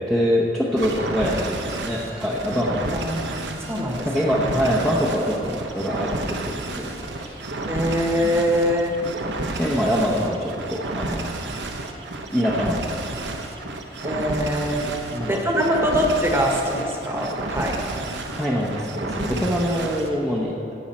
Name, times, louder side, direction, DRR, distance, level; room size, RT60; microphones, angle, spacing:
voice 1, 0.1-3.0 4.0-7.4 8.2-8.4 9.5-11.3 12.3-13.0 15.1-15.4 18.4-20.5, equal, 5° left, -5 dB, 0.9 m, -24 dB
sound 1, 0.8-20.1, right 2 dB, 75° right, 0.9 m, -31 dB
voice 2, 2.9-4.1 7.7-9.0 14.0-14.9 15.3-17.8, equal, 15° right, 0 dB, 1.2 m, -23 dB
15.5 x 6.4 x 4.3 m, 2.7 s
head